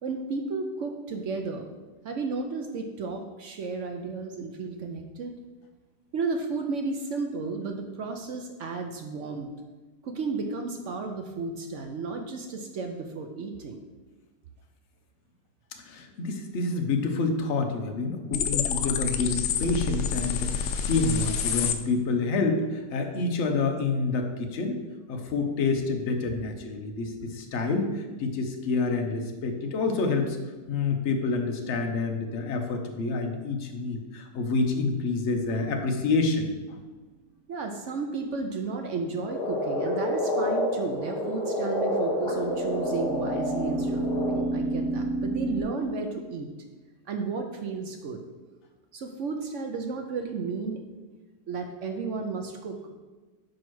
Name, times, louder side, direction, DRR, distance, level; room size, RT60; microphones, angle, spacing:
voice 1, 0.0-1.7 2.0-5.3 6.1-9.5 10.0-13.8 37.5-46.5 47.1-48.2 48.9-50.8 51.5-52.9, right 4 dB, 65° right, 4 dB, 0.8 m, -33 dB
voice 2, 15.8-24.8 25.1-30.4 30.7-36.8, left 3 dB, 50° left, 4 dB, 1.0 m, -28 dB
sound 1, 18.3-21.7, left 7 dB, 85° left, 0.6 m, -28 dB
sound 2, 35.3-36.0 42.0-45.6, right 2 dB, 25° right, 1.1 m, -31 dB
Frog, 39.3-44.4, left 1 dB, 70° left, 2.6 m, -29 dB
5.2 x 4.7 x 6.0 m, 1.2 s
omnidirectional pair, 1.8 m